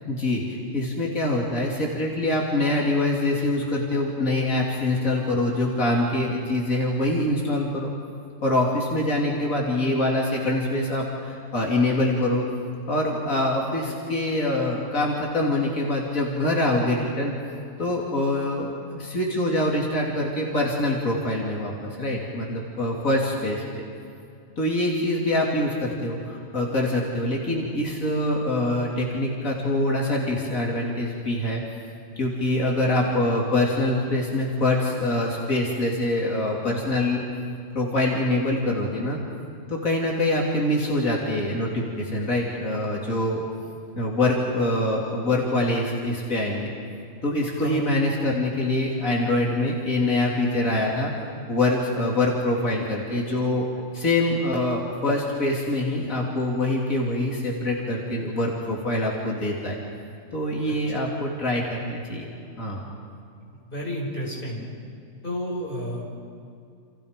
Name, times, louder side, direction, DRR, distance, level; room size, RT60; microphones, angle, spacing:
voice 1, 0.1-7.9 8.4-12.4 12.9-17.3 17.8-23.8 24.6-31.6 32.2-37.2 37.7-39.2 39.7-43.4 44.0-46.7 47.2-51.1 51.5-53.7 53.9-59.8 60.3-62.8, left 1 dB, 90° left, -2 dB, 3.4 m, -24 dB
voice 2, 63.7-64.6 65.2-66.1, equal, 40° left, -3 dB, 6.3 m, -30 dB
30.0 x 28.5 x 5.2 m, 2.4 s
omnidirectional pair, 1.4 m